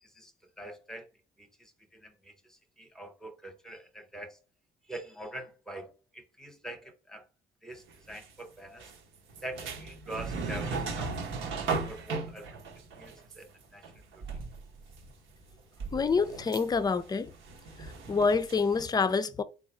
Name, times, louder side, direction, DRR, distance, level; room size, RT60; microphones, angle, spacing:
voice 1, 0.0-0.3 0.6-1.1 1.4-4.4 4.8-7.3 7.6-8.9 9.4-12.6 13.0-13.8 14.1-14.2, right 1 dB, ahead, 0.9 m, -44 dB
sound 1, 7.9-8.3 8.8-15.1 15.4-18.8, right 4 dB, 80° right, 1.0 m, -37 dB
voice 2, 15.9-17.3 17.8-19.4, left 4 dB, 20° left, 0.4 m, -27 dB
3.7 x 2.4 x 4.2 m
cardioid pair, 90°, 20 cm